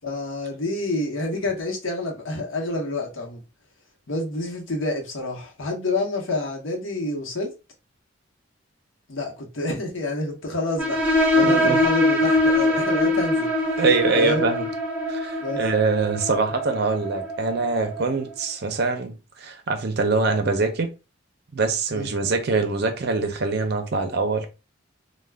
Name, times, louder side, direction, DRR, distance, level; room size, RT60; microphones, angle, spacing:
voice 1, 0.0-3.4 4.1-7.5 9.1-11.0 11.3-13.7 14.1-14.4 15.4-15.6 21.9-22.2, left 2 dB, 70° left, 0.9 m, -28 dB
sound 1, 10.8-18.1, left 1 dB, 5° right, 0.7 m, -23 dB
voice 2, 11.4-11.8 13.8-14.7 15.1-20.9 21.5-24.5, right 4 dB, 50° right, 0.5 m, -24 dB
2.3 x 2.2 x 3.3 m
head